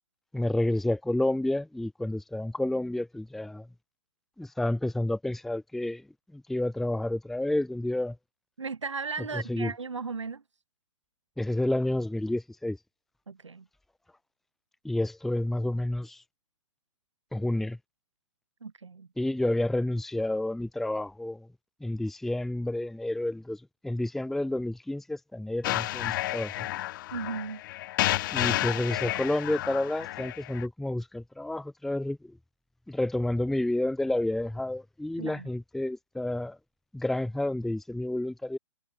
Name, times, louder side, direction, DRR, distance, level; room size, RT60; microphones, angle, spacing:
voice 1, 0.3-3.7 4.4-6.0 6.3-8.2 9.3-9.7 11.4-12.8 14.8-16.2 17.3-17.8 19.2-21.5 21.8-26.7 28.3-32.2 32.9-36.6 36.9-38.6, left 1 dB, ahead, 0.8 m, -30 dB
voice 2, 8.6-10.4 13.3-13.7 18.6-19.1 27.1-27.6 35.2-35.5, right 4 dB, 75° right, 1.8 m, -36 dB
sound 1, 25.6-30.7, left 16 dB, 45° left, 3.2 m, -31 dB
figure-of-eight pair, 115°, 15 cm